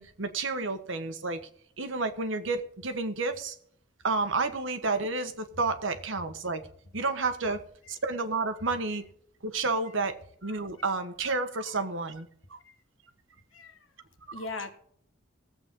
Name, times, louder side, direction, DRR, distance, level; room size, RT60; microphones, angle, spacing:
voice 1, 0.0-1.4 1.8-3.6 4.0-6.6 6.9-7.6 7.9-9.0 9.4-10.1 10.4-12.6 14.3-14.4, right 3 dB, 70° right, 8 dB, 1.3 m, -30 dB
voice 2, 13.5-13.9 14.3-14.7, left 3 dB, 75° left, 8 dB, 1.5 m, -39 dB
19.5 x 8.0 x 3.7 m, 0.66 s
head